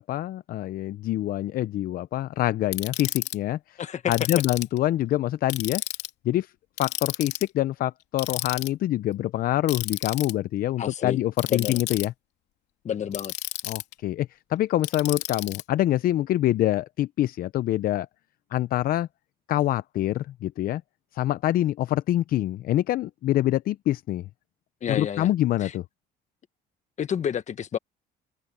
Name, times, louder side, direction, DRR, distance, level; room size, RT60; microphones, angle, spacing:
voice 1, 0.0-3.8 4.1-5.8 6.2-6.5 6.8-12.1 13.7-18.1 18.5-19.1 19.5-20.8 21.1-24.3 24.9-25.8, left 14 dB, 60° left, 0.5 m, -25 dB
Ratchet pawl, 2.7-3.3 4.1-4.8 5.5-6.1 6.8-7.5 8.2-8.7 9.7-10.3 11.4-12.1 13.1-13.9 14.8-15.6, left 15 dB, 85° left, 3.1 m, -32 dB
voice 2, 3.8-4.1 10.8-11.2 11.5-11.8 12.8-13.3 24.8-25.3 25.6-25.7 27.0-27.8, left 8 dB, 45° left, 1.3 m, -29 dB
cardioid pair, 110°, 17 cm